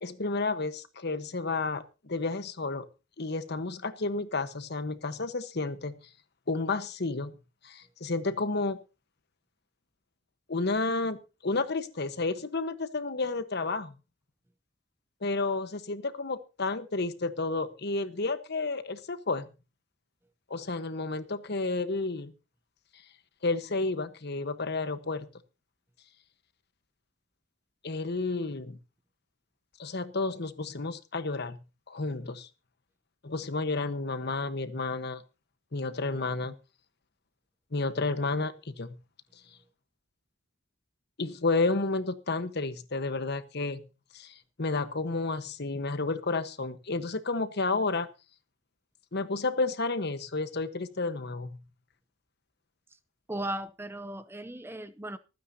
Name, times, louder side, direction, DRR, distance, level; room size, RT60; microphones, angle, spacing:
voice 1, 0.0-2.9 3.2-6.0 6.5-7.3 7.6-8.8 10.5-13.9 15.2-19.4 20.5-22.3 23.4-25.3 27.8-28.8 29.8-31.6 31.9-32.5 33.2-35.2 35.7-36.5 37.7-38.9 41.2-43.9 44.1-48.1 49.1-51.5, left 3 dB, 60° left, 1.2 m, -31 dB
voice 2, 53.3-55.2, right 1 dB, 10° right, 0.6 m, -36 dB
25.0 x 9.4 x 2.8 m
head